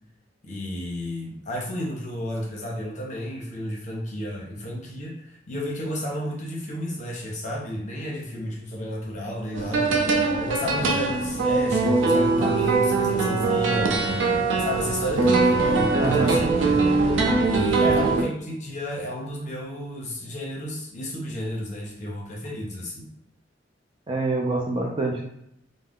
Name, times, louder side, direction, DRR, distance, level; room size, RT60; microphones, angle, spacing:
voice 1, 0.4-10.0 10.4-14.3 14.6-16.9 17.4-23.1, equal, 40° left, -2 dB, 0.7 m, -32 dB
sound 1, 9.5-18.2, right 3 dB, 85° right, 0.5 m, -22 dB
voice 2, 16.0-16.4 17.8-18.0 24.1-25.3, right 2 dB, 25° right, -1 dB, 0.5 m, -26 dB
2.3 x 2.1 x 3.5 m, 0.76 s
head